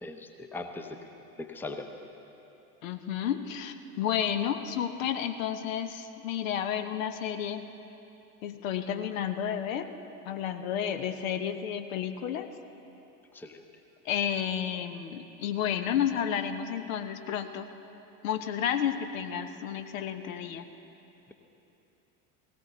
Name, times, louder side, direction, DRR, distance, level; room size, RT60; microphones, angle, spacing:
voice 1, 0.0-1.1 1.4-1.9 13.3-13.6, left 3 dB, 5° left, 5 dB, 0.7 m, -40 dB
voice 2, 2.8-7.6 8.4-9.9 10.3-12.5 14.0-17.7 18.2-20.6, left 9 dB, 60° left, 8 dB, 0.9 m, -31 dB
17.5 x 17.0 x 3.8 m, 3.0 s
figure-of-eight pair, 80°, 45 cm